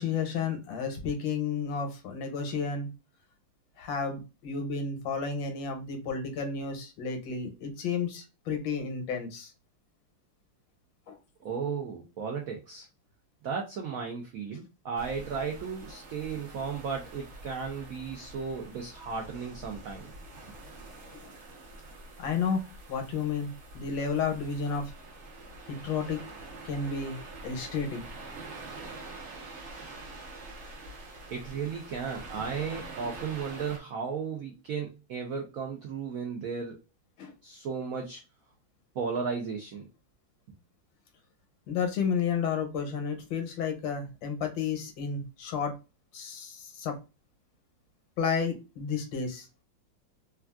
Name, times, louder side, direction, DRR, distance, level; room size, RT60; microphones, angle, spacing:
voice 1, 0.0-2.9 3.8-9.5 11.1-11.2 21.2-21.3 22.2-22.6 22.9-24.9 25.7-26.2 26.6-27.2 27.4-28.0 37.2-37.3 41.7-45.7 46.1-46.9 48.2-49.5, left 6 dB, 75° left, 5 dB, 1.4 m, -32 dB
voice 2, 11.4-12.9 13.4-20.1 31.3-36.8 37.4-38.2 38.9-39.9, right 6 dB, 80° right, 1 dB, 0.7 m, -35 dB
sound 1, 15.0-33.8, right 2 dB, 50° right, 0.9 m, -45 dB
3.4 x 2.3 x 2.2 m, 0.28 s
omnidirectional pair, 2.1 m